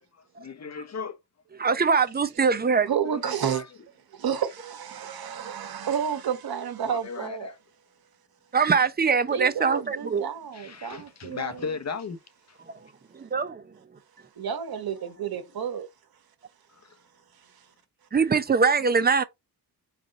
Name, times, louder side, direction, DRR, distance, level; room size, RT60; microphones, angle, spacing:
voice 1, 0.4-1.2 3.1-3.6 5.3-5.5 5.8-5.9 6.9-7.6 10.5-12.2 12.5-12.6 14.4-14.5 15.0-15.5 16.8-17.0, left 5 dB, 40° left, 0.9 m, -37 dB
voice 2, 1.6-2.9 8.5-10.2 13.1-13.6 18.1-19.2, right 5 dB, 25° right, 0.7 m, -22 dB
voice 3, 2.9-3.6 4.1-7.5 9.3-11.7 14.4-15.9, right 8 dB, 60° right, 1.3 m, -31 dB
3.6 x 3.3 x 4.0 m
cardioid pair, 70°, 40 cm